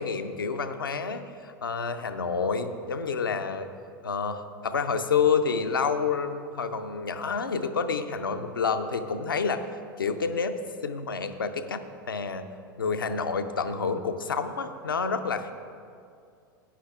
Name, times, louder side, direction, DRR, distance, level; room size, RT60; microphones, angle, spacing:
voice 1, 0.0-3.7 4.0-9.6 10.0-10.6 10.8-11.8 12.1-12.5 12.8-15.5, left 5 dB, 75° left, 8 dB, 0.6 m, -28 dB
16.0 x 9.8 x 2.4 m, 2.3 s
figure-of-eight pair, 85°, 12 cm